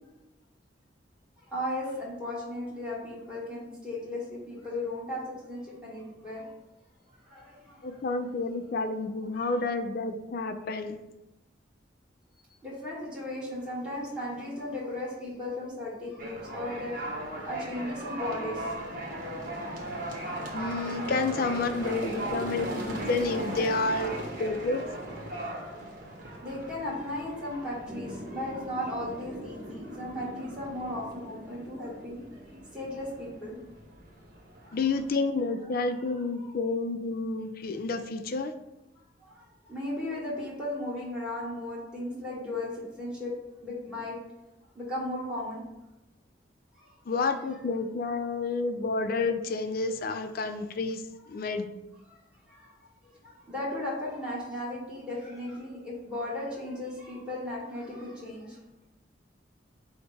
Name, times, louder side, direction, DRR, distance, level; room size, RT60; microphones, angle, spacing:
voice 1, 1.5-6.5 7.2-8.4 9.4-9.5 12.6-17.0 17.4-18.6 25.2-25.8 26.4-32.2 32.7-33.6 34.6-34.8 35.6-35.7 36.0-36.5 39.2-43.4 43.6-44.2 44.7-45.6 46.8-46.9 51.3-51.5 52.1-52.2 52.5-52.7 53.0-58.6, left 1 dB, 5° right, -8 dB, 1.5 m, -36 dB
voice 2, 7.8-11.0 20.5-24.8 34.7-38.5 47.1-51.0 51.3-51.7, left 3 dB, 55° left, 8 dB, 0.4 m, -30 dB
sound 1, 16.2-35.1, right 1 dB, 50° right, 1.0 m, -38 dB
sound 2, 27.9-33.1, equal, 70° right, 0.9 m, -44 dB
5.1 x 2.1 x 4.7 m, 0.99 s
head